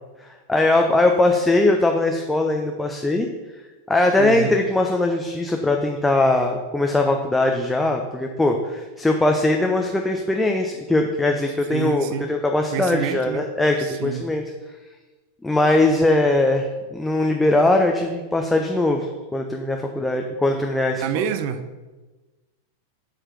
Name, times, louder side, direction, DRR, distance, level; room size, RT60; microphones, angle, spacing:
voice 1, 0.2-3.3 3.9-14.4 15.4-19.1 19.3-21.3, left 2 dB, 5° left, 2 dB, 0.6 m, -20 dB
voice 2, 4.2-4.5 11.7-12.3 12.7-13.5 13.8-14.3 21.0-21.7, right 9 dB, 45° right, 11 dB, 0.6 m, -28 dB
7.7 x 4.9 x 5.9 m, 1.2 s
figure-of-eight pair, 90°, 0 cm